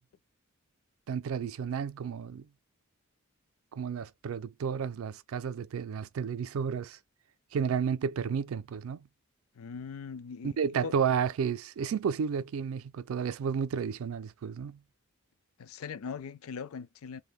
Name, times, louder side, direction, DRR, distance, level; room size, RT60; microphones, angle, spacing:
voice 1, 1.1-2.5 3.7-7.0 7.5-9.1 10.4-14.8, right 7 dB, 75° right, 0.3 m, -32 dB
voice 2, 9.5-10.5 10.8-10.9 15.6-17.2, left 6 dB, 80° left, 0.4 m, -40 dB
3.3 x 2.1 x 2.2 m
head